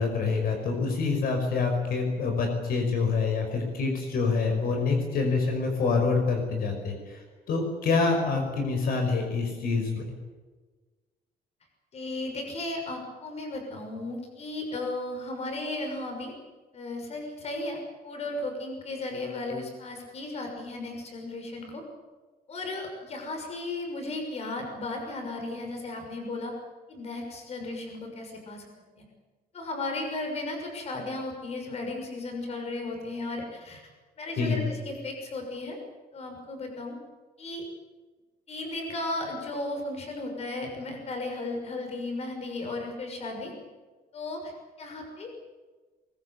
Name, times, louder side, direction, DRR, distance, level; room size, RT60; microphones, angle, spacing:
voice 1, 0.0-10.0 34.4-34.7, left 4 dB, 65° left, 3 dB, 5.4 m, -26 dB
voice 2, 11.9-16.3 16.7-21.8 22.5-26.5 26.9-28.6 29.0-29.1 29.5-33.8 34.2-35.8 36.1-36.9 37.4-37.6 38.5-43.5 44.1-44.5 44.8-45.3, left 2 dB, 40° left, 3 dB, 6.3 m, -35 dB
23.5 x 22.0 x 8.3 m, 1.3 s
cardioid pair, 180°, 16 cm